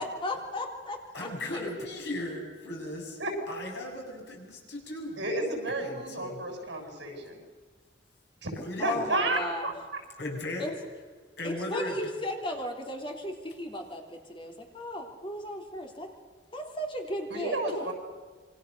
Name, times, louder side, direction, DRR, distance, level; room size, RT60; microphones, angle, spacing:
voice 1, 0.0-1.3 8.8-9.7 10.6-10.7 11.4-16.1 16.5-17.6, left 1 dB, 30° left, 2 dB, 3.3 m, -35 dB
voice 2, 1.1-3.2 3.5-5.3 5.8-6.4 8.6-9.0 10.2-10.7 11.4-11.9, left 1 dB, 65° left, 0 dB, 7.3 m, -36 dB
voice 3, 5.2-7.4 8.4-8.5 8.8-9.7 17.3-17.9, right 2 dB, 70° right, 3 dB, 7.0 m, -31 dB
27.5 x 24.0 x 6.7 m, 1.4 s
head